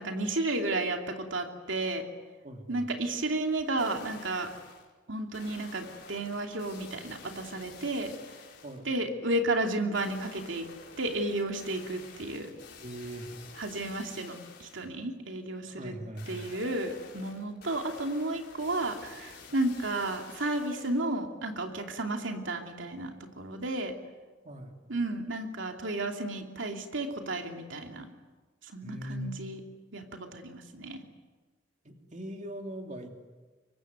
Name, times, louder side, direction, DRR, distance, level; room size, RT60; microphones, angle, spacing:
voice 1, 0.0-2.0 2.7-4.5 5.1-8.1 8.8-10.7 11.0-12.5 13.6-15.9 16.3-23.9 24.9-28.1 28.6-29.6 29.9-31.0, right 2 dB, 80° right, 3 dB, 2.8 m, -32 dB
voice 2, 2.4-2.9 8.6-8.9 12.8-13.3 15.6-16.5 24.4-24.8 28.8-29.3 31.8-33.2, equal, 40° right, 3 dB, 2.9 m, -40 dB
sound 1, 3.6-4.9 5.3-8.9 9.9-14.9 16.2-21.1 21.6-21.7, left 5 dB, 60° left, 4.9 m, -50 dB
24.5 x 24.0 x 9.5 m, 1.3 s
head